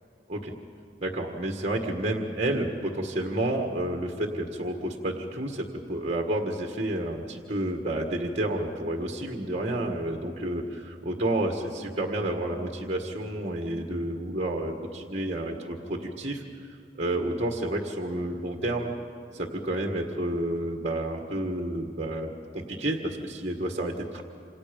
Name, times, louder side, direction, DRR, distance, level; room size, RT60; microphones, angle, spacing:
voice 1, 1.0-16.4 17.0-18.9 19.3-22.3 22.5-24.2, right 1 dB, 35° right, 2 dB, 1.7 m, -30 dB
27.5 x 27.5 x 5.3 m, 2.5 s
head